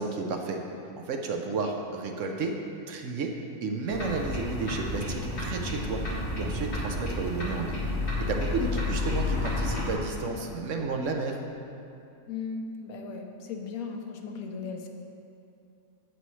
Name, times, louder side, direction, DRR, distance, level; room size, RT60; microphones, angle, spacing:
voice 1, 0.0-2.6 2.9-6.0 6.4-7.8 8.2-11.4, right 3 dB, 65° right, 3 dB, 1.0 m, -32 dB
sound 1, 3.9-9.9, left 2 dB, 50° left, 1.8 m, -31 dB
voice 2, 8.7-9.7 12.3-14.9, left 5 dB, 80° left, 3 dB, 1.2 m, -38 dB
9.1 x 8.0 x 3.2 m, 2.6 s
omnidirectional pair, 1.5 m